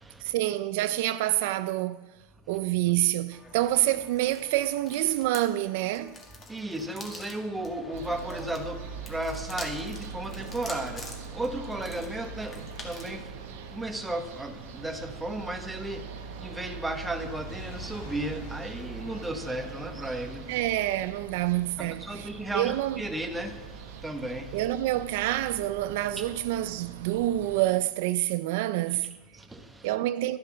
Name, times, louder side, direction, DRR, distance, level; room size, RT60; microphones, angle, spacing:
voice 1, 0.2-2.1 2.5-6.2 20.5-22.3 22.5-23.0 24.5-29.1 29.8-30.4, right 15 dB, 70° right, 0.4 m, -27 dB
sound 1, 3.3-13.2, left 2 dB, 20° left, 1.9 m, -46 dB
voice 2, 6.4-20.6 21.8-24.7 26.2-26.3 29.3-30.0, right 1 dB, 5° right, 1.1 m, -35 dB
sound 2, 7.9-27.6, right 6 dB, 90° right, 1.1 m, -42 dB
Fire, 17.0-23.4 24.1-24.2, left 3 dB, 70° left, 3.0 m, -49 dB
12.5 x 7.6 x 6.1 m
supercardioid pair, 140°, 0 cm